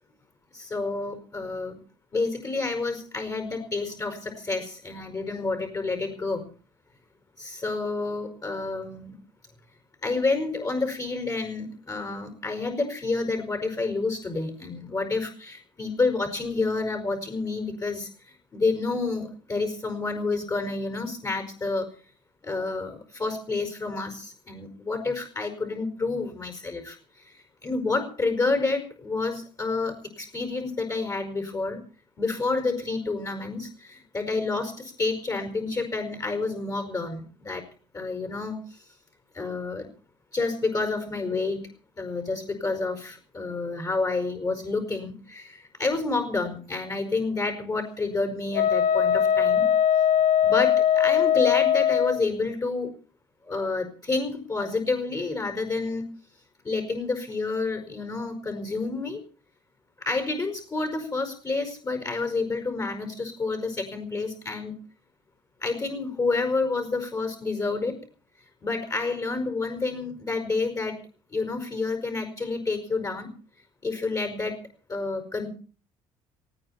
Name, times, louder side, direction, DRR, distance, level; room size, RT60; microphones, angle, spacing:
voice 1, 0.5-1.8 2.1-6.5 7.4-9.2 10.0-18.1 18.5-21.9 22.4-31.8 32.2-37.6 37.9-38.8 39.3-39.8 40.3-41.7 42.0-49.7 50.4-52.9 53.4-56.0 56.6-59.2 60.1-64.8 65.6-68.0 68.6-71.0 71.3-73.3 73.8-75.5, left 3 dB, 30° left, 7 dB, 5.2 m, -29 dB
Wind instrument woodwind instrument, 48.5-52.2, left 9 dB, 75° left, 1.1 m, -21 dB
19.0 x 17.0 x 4.3 m, 0.39 s
cardioid pair, 105°, 11 cm